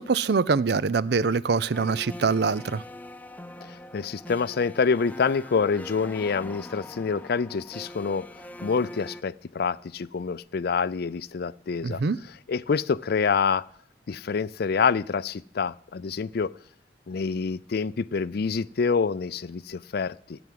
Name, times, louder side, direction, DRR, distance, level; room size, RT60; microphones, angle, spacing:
voice 1, 0.0-2.8 11.8-12.2, right 4 dB, 65° right, 0.5 m, -24 dB
sound 1, 1.7-9.2, left 1 dB, 10° left, 0.5 m, -42 dB
voice 2, 3.7-8.3 8.6-12.0 12.5-13.6 14.1-16.5 17.1-20.4, left 5 dB, 60° left, 0.4 m, -27 dB
14.5 x 6.0 x 9.3 m
head